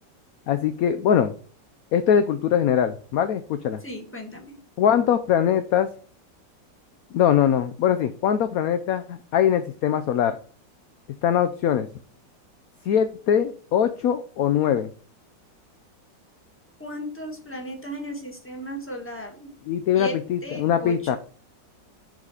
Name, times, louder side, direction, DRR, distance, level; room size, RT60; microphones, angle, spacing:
voice 1, 0.5-1.3 1.9-3.8 4.8-5.9 7.1-10.3 11.2-11.9 12.9-14.9 19.7-21.2, left 9 dB, 70° left, 10 dB, 0.9 m, -22 dB
voice 2, 3.8-4.5 16.8-19.5 19.9-20.1 20.4-21.2, equal, 5° left, 1 dB, 1.6 m, -35 dB
7.2 x 3.9 x 4.9 m, 0.42 s
omnidirectional pair, 2.0 m